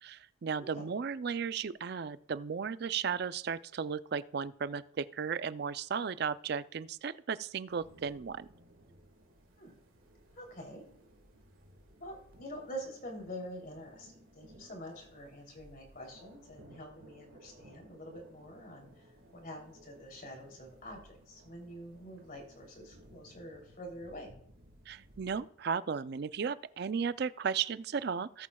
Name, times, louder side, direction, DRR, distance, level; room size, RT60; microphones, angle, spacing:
voice 1, 0.0-8.5 24.9-28.5, right 6 dB, 50° right, 15 dB, 0.4 m, -35 dB
sound 1, 7.7-25.5, right 1 dB, 80° right, 1.7 m, -59 dB
voice 2, 10.3-10.8 12.0-19.1 19.3-24.3, equal, 45° left, 1 dB, 3.1 m, -46 dB
18.5 x 8.4 x 2.3 m, 0.64 s
head